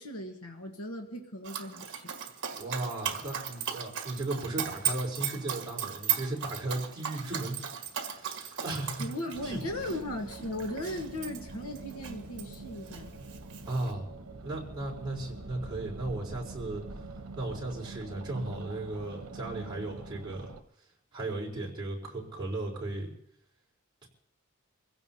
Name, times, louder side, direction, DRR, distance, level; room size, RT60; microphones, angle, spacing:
voice 1, 0.0-2.1 9.0-13.2, left 1 dB, 75° left, 3 dB, 1.4 m, -38 dB
Dog, 1.4-12.5 12.9-13.9, right 9 dB, 55° right, 1.6 m, -36 dB
voice 2, 2.6-7.6 8.1-9.1 9.4-9.6 13.6-14.1 14.4-16.8 17.4-20.5 21.1-23.1 24.0-24.1, right 2 dB, 20° right, -4 dB, 4.1 m, -36 dB
sound 1, 9.3-20.6, right 2 dB, 85° right, 1.1 m, -44 dB
25.5 x 16.5 x 2.8 m, 0.72 s
head